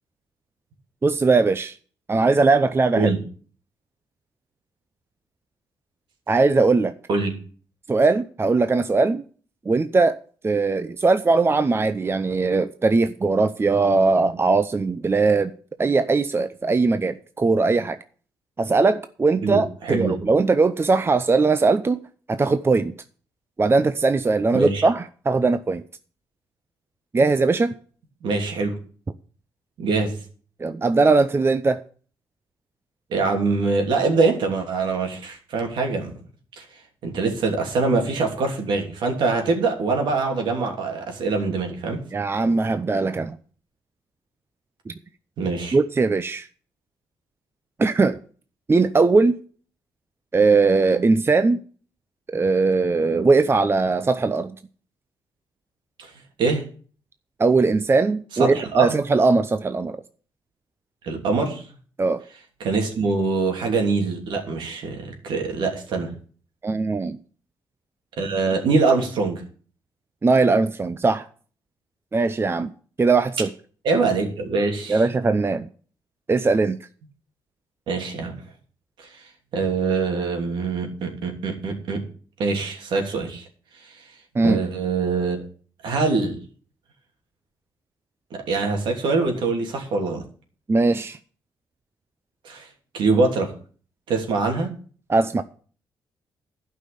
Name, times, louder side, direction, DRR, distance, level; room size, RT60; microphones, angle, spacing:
voice 1, 1.0-1.8 2.1-3.1 6.3-6.9 7.9-9.2 9.6-10.2 10.4-15.5 15.8-18.0 18.6-22.0 22.3-22.9 23.6-25.8 27.1-27.7 30.6-31.8 42.1-43.4 44.9-45.0 45.7-46.5 47.8-48.2 48.7-49.3 50.3-51.6 52.3-54.6 57.4-60.0 62.0-62.2 66.6-67.2 70.2-71.3 72.1-72.7 73.0-73.5 74.9-75.7 76.3-76.8 84.3-84.6 90.7-91.2 95.1-95.4, right 3 dB, 30° right, 11 dB, 0.7 m, -20 dB
voice 2, 19.4-20.2 24.5-24.9 28.2-28.8 29.8-30.1 33.1-36.1 36.6-36.7 37.0-42.0 45.4-45.8 56.0-56.1 56.4-56.6 58.4-59.0 61.0-61.6 62.6-66.1 68.2-69.4 73.8-75.0 77.9-78.3 79.0-79.1 79.5-82.0 82.4-83.4 84.4-85.4 85.8-86.4 88.3-90.2 92.4-92.7 92.9-93.5 94.1-94.7, right 4 dB, 75° right, 3 dB, 3.0 m, -23 dB
11.5 x 5.7 x 8.5 m, 0.44 s
supercardioid pair, 60°, 8 cm